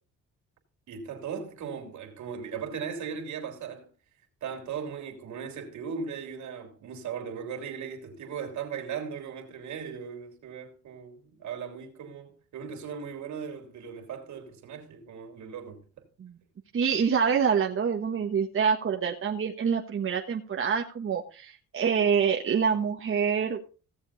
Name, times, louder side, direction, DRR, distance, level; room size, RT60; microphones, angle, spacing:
voice 1, 0.9-3.9 4.4-15.8, right 6 dB, 75° right, 3.1 m, -38 dB
voice 2, 16.7-23.6, right 6 dB, 45° right, 1.4 m, -26 dB
16.5 x 7.1 x 4.1 m
cardioid pair, 90°, 30 cm